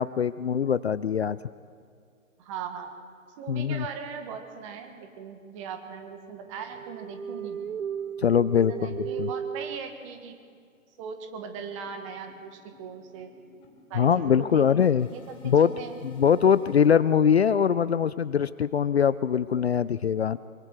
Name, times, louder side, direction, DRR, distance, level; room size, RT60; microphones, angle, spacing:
voice 1, 0.0-1.4 3.5-3.9 8.2-9.3 13.9-15.1 15.4-15.7 16.0-20.4, left 8 dB, 50° left, 16 dB, 0.5 m, -22 dB
voice 2, 2.4-2.9 3.4-7.6 8.5-10.4 11.0-13.3 13.9-16.0, right 6 dB, 25° right, 6 dB, 1.7 m, -39 dB
sound 1, 6.5-9.8, right 8 dB, 80° right, 0.6 m, -35 dB
sound 2, 10.1-10.2 10.5-10.7 11.0-16.9, left 4 dB, 10° left, 1.4 m, -54 dB
23.5 x 23.5 x 4.9 m, 2.2 s
figure-of-eight pair, 140°, 41 cm